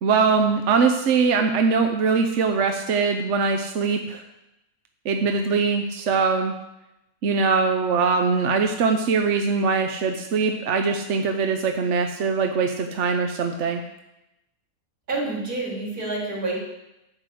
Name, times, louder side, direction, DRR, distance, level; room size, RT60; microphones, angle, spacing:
voice 1, 0.0-4.2 5.0-6.5 7.2-13.8, right 5 dB, 60° right, 5 dB, 1.0 m, -22 dB
voice 2, 15.1-16.6, right 3 dB, 85° right, -6 dB, 4.1 m, -28 dB
11.5 x 4.9 x 7.6 m, 0.92 s
omnidirectional pair, 1.5 m